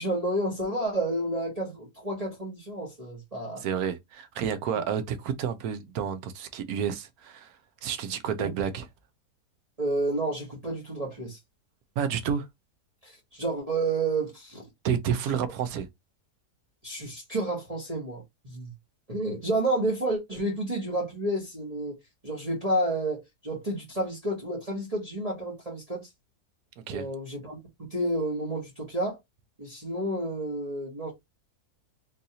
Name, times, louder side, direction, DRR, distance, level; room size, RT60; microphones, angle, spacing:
voice 1, 0.0-3.6 4.7-4.8 8.4-8.5 9.8-11.4 13.0-14.6 16.8-18.7 19.1-21.9 22.2-26.1 26.9-29.2 29.6-31.1, right 1 dB, 25° right, 1.1 m, -30 dB
voice 2, 3.6-7.6 7.8-8.9 12.0-12.5 14.8-15.9 26.9-27.0, right 8 dB, 70° right, 1.1 m, -30 dB
3.8 x 2.6 x 2.8 m
omnidirectional pair, 1.7 m